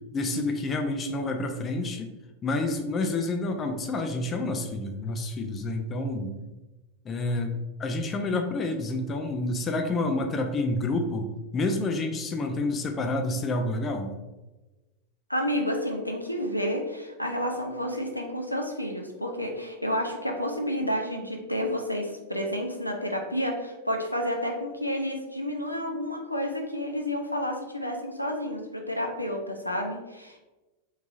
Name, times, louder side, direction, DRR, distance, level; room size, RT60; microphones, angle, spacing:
voice 1, 0.1-2.1 2.4-6.3 7.0-14.1, left 2 dB, 25° left, 5 dB, 0.4 m, -29 dB
voice 2, 15.3-30.4, equal, 90° left, 2 dB, 0.4 m, -30 dB
3.5 x 3.1 x 2.4 m, 1.1 s
figure-of-eight pair, 90°, 0 cm